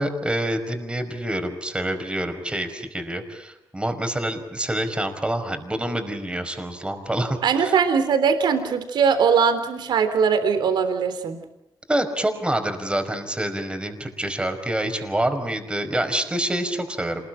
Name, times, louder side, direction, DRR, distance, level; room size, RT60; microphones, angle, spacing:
voice 1, 0.0-7.8 11.9-17.3, right 1 dB, 15° right, 6 dB, 5.2 m, -27 dB
voice 2, 7.4-11.4, right 6 dB, 75° right, 8 dB, 3.6 m, -20 dB
27.5 x 21.0 x 9.1 m, 0.83 s
cardioid pair, 85°, 8 cm